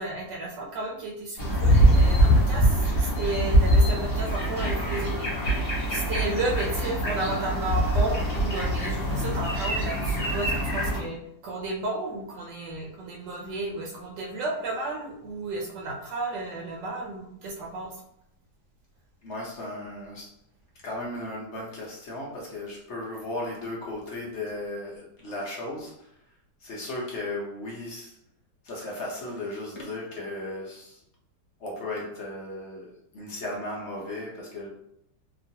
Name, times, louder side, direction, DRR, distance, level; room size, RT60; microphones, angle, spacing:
voice 1, 0.0-17.9, right 2 dB, 80° right, -1 dB, 1.2 m, -33 dB
sound 1, 1.4-11.0, equal, 40° left, 1.1 m, -23 dB
voice 2, 19.2-20.3 20.8-26.1 26.6-28.2 28.6-31.0 31.6-32.9 33.1-34.7, left 1 dB, 65° left, -3 dB, 0.7 m, -35 dB
2.9 x 2.4 x 2.7 m, 0.76 s
omnidirectional pair, 1.9 m